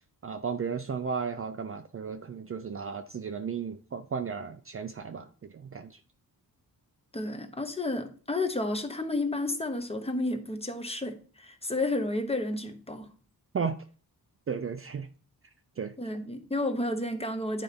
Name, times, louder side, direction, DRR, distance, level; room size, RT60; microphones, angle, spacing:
voice 1, 0.2-6.0 13.5-13.8 14.5-15.1 15.8-15.9, right 6 dB, 35° right, 0.5 m, -34 dB
voice 2, 7.1-13.1 16.0-17.6, left 2 dB, 15° left, 0.9 m, -31 dB
9.9 x 4.1 x 5.1 m
wide cardioid pair, 175°, 38 cm